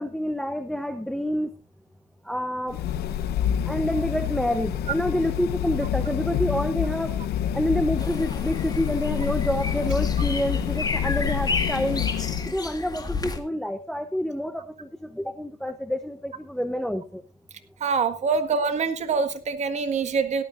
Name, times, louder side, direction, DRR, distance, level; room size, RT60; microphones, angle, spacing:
voice 1, 0.0-1.5 2.3-2.8 3.7-7.1 7.5-12.0 12.4-17.2, equal, ahead, 10 dB, 0.8 m, -28 dB
sound 1, 2.7-12.5, left 9 dB, 70° left, 1.0 m, -27 dB
sound 2, 8.0-13.4, left 4 dB, 20° left, 1.9 m, -32 dB
voice 2, 17.8-20.4, right 5 dB, 40° right, 8 dB, 1.7 m, -25 dB
17.5 x 12.5 x 2.6 m, 0.34 s
cardioid pair, 110°, 17 cm